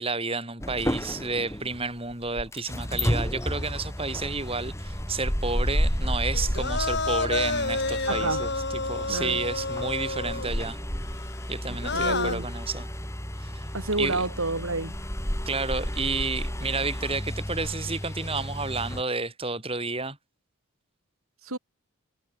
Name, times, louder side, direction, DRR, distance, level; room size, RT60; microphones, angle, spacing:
voice 1, 0.0-8.5 8.8-10.8 11.5-12.9 13.4-13.6 14.0-14.2 15.4-20.2, right 3 dB, 25° right, 6.5 m, -31 dB
sound 1, 0.6-19.0, equal, 15° left, 5.7 m, -32 dB
sound 2, 6.3-10.7 11.7-12.4, left 3 dB, 50° left, 4.1 m, -29 dB
voice 2, 8.1-8.5 9.1-9.4 11.9-12.5 13.7-15.0 21.4-21.6, right 2 dB, 75° right, 4.4 m, -29 dB
head